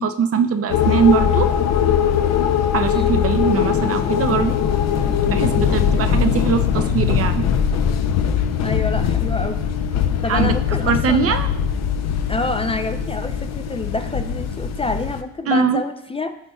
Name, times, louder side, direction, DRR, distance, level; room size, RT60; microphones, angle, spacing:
voice 1, 0.0-1.5 2.7-4.6 5.2-7.4 10.3-10.5 10.9-11.5 15.5-15.8, right 6 dB, 50° right, 9 dB, 0.6 m, -21 dB
sound 1, 0.7-15.2, left 8 dB, 60° left, 0.6 m, -20 dB
voice 2, 8.6-9.6 10.2-11.4 12.3-16.4, left 3 dB, 20° left, 8 dB, 0.4 m, -27 dB
12.5 x 4.2 x 2.3 m, 0.79 s
cardioid pair, 90°, 30 cm